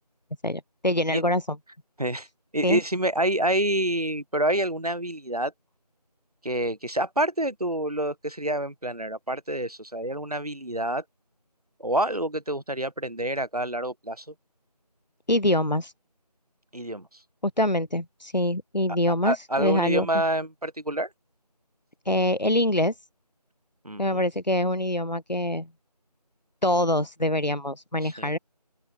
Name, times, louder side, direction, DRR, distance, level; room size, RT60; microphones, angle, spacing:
voice 1, 0.4-1.4 2.6-2.8 15.3-15.9 17.4-20.1 22.1-22.9 24.0-25.7 26.6-28.4, left 1 dB, 85° left, 2.5 m, -24 dB
voice 2, 2.5-5.5 6.4-11.0 11.8-14.2 16.7-17.1 19.2-21.1 23.8-24.2 28.2-28.3, right 1 dB, 65° right, 4.4 m, -27 dB
open air
figure-of-eight pair, 175°, 21 cm